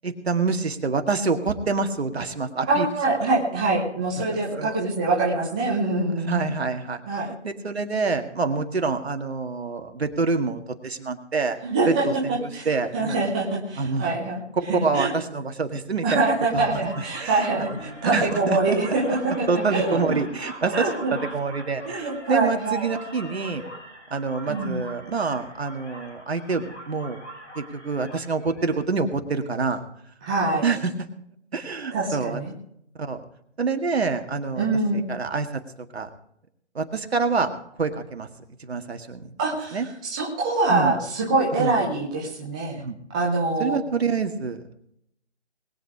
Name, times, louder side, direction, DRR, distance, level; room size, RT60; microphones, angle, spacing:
voice 1, 0.0-2.9 4.2-4.7 6.2-7.0 7.3-11.6 11.9-13.2 13.8-14.2 14.8-16.2 16.5-16.8 17.1-17.8 18.1-18.8 19.1-19.2 19.5-23.6 24.1-27.2 27.6-29.8 30.6-30.9 31.5-32.4 33.0-33.2 33.6-34.7 34.9-35.6 35.9-36.1 36.7-38.3 38.6-39.3 39.7-39.9 40.7-41.0 41.6-41.8 42.8-43.0 43.6-44.6, right 4 dB, 60° right, 7 dB, 2.0 m, -27 dB
voice 2, 2.6-6.5 7.1-7.4 11.6-12.7 12.9-14.4 14.7-15.1 16.0-20.2 20.7-21.1 21.8-22.9 24.4-24.8 30.2-30.6 31.9-32.5 34.6-35.1 39.4-42.8 43.1-43.8, right 3 dB, 5° right, -3 dB, 0.7 m, -24 dB
sound 1, 16.8-28.8, equal, 80° left, 4.6 m, -41 dB
21.0 x 8.5 x 4.8 m, 0.72 s
figure-of-eight pair, 160°, 35 cm